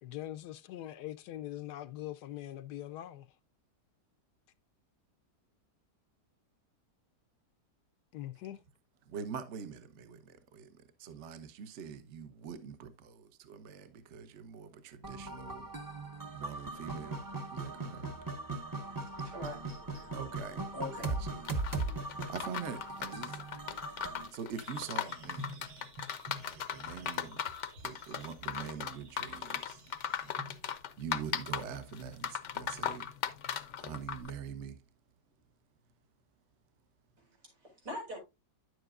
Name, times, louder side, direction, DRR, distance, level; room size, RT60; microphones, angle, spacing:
voice 1, 0.0-3.3 8.1-8.6, left 13 dB, 75° left, 1.1 m, -42 dB
voice 2, 9.1-10.7 11.0-15.7 16.3-17.2 17.5-18.1 20.1-20.7 21.0-21.4 22.0-23.4 24.3-25.6 26.5-27.4 27.8-29.8 31.0-33.1 33.8-34.8, right 7 dB, 50° right, 1.0 m, -44 dB
sound 1, 15.0-24.3, right 2 dB, 20° right, 0.6 m, -39 dB
voice 3, 19.2-20.1 20.7-21.1 37.6-38.2, left 1 dB, 85° right, 5.3 m, -42 dB
sound 2, 21.4-34.3, left 8 dB, 60° left, 0.9 m, -38 dB
sound 3, 24.5-30.8, equal, 70° right, 1.7 m, -51 dB
9.9 x 7.9 x 2.4 m
omnidirectional pair, 1.8 m